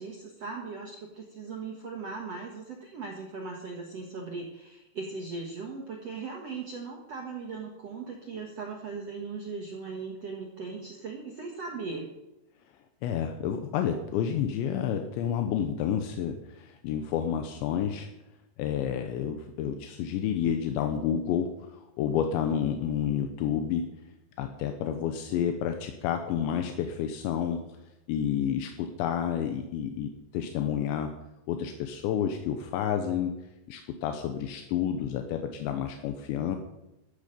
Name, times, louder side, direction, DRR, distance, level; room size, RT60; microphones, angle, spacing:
voice 1, 0.0-12.1, right 4 dB, 65° right, 1 dB, 1.5 m, -38 dB
voice 2, 13.0-18.1 18.6-23.9 24.4-27.6 28.1-31.1 31.5-33.3 33.7-36.6, left 9 dB, 80° left, 6 dB, 3.2 m, -30 dB
14.5 x 12.0 x 5.3 m, 0.93 s
omnidirectional pair, 5.2 m